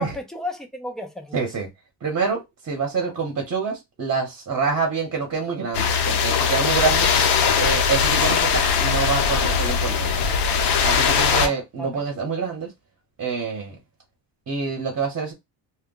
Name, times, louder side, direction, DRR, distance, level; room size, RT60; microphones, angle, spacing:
voice 1, 0.0-1.4 11.1-11.5 11.8-12.0, left 2 dB, ahead, 0.4 m, -33 dB
voice 2, 1.3-1.7 2.0-7.1 7.6-10.3 10.8-12.7 13.2-13.8 14.5-15.3, right 5 dB, 35° right, 0.9 m, -26 dB
sound 1, 5.7-11.5, left 6 dB, 70° left, 0.8 m, -20 dB
2.2 x 2.2 x 3.7 m
cardioid pair, 135°, 43 cm